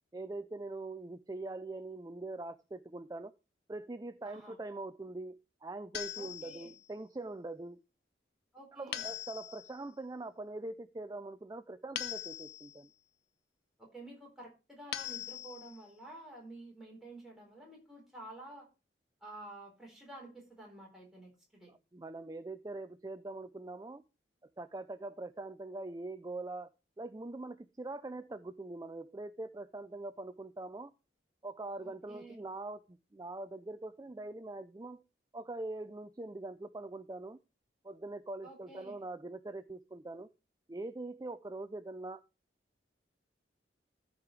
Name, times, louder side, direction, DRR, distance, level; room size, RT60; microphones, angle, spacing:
voice 1, 0.1-3.3 3.7-7.8 8.7-12.9 21.7-24.0 24.6-26.7 27.0-30.9 31.4-35.0 35.3-37.4 37.8-40.3 40.7-42.2, right 2 dB, 20° right, 12 dB, 0.4 m, -43 dB
voice 2, 4.2-4.6 6.2-6.7 8.5-9.1 13.8-18.7 19.2-21.7 31.8-32.4 38.4-39.0, right 2 dB, ahead, -2 dB, 4.1 m, -51 dB
sound 1, 5.9-6.9 8.9-9.8 12.0-12.9 14.9-15.8, left 10 dB, 70° left, 0.6 m, -41 dB
13.5 x 4.9 x 4.6 m, 0.29 s
head